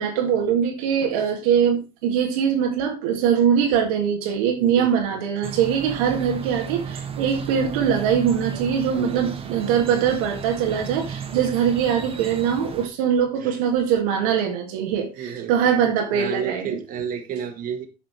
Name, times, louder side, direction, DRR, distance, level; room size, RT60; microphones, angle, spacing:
voice 1, 0.0-16.8, right 8 dB, 80° right, 1.9 m, -22 dB
voice 2, 4.6-4.9 9.0-9.6 13.4-13.6 15.2-15.5 16.1-17.9, right 8 dB, 50° right, 1.8 m, -31 dB
sound 1, 5.4-12.9, right 6 dB, 30° right, 1.6 m, -34 dB
8.2 x 5.1 x 4.6 m
hypercardioid pair, 80°, 18 cm